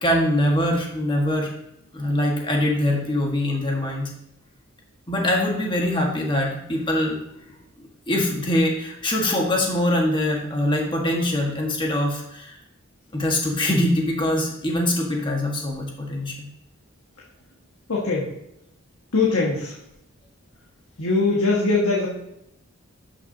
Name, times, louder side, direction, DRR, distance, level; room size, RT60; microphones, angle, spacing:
voice 1, 0.0-1.5 1.9-4.1 5.1-7.2 8.1-12.6 13.1-16.5, left 1 dB, 25° left, 0 dB, 1.5 m, -23 dB
voice 2, 17.9-18.3 19.1-19.8 21.0-22.1, left 3 dB, 85° left, -5 dB, 1.6 m, -21 dB
11.5 x 6.1 x 2.8 m, 0.81 s
head